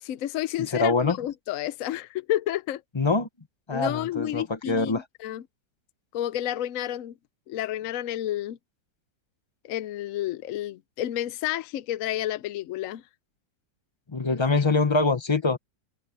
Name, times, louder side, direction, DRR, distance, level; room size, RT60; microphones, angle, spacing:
voice 1, 0.0-2.8 3.7-5.4 6.1-7.1 7.5-8.6 9.6-13.0 14.3-14.4, left 12 dB, 70° left, 0.8 m, -30 dB
voice 2, 0.7-1.2 3.0-3.3 3.7-5.0 14.1-15.6, left 3 dB, 30° left, 0.5 m, -24 dB
omnidirectional pair, 1.9 m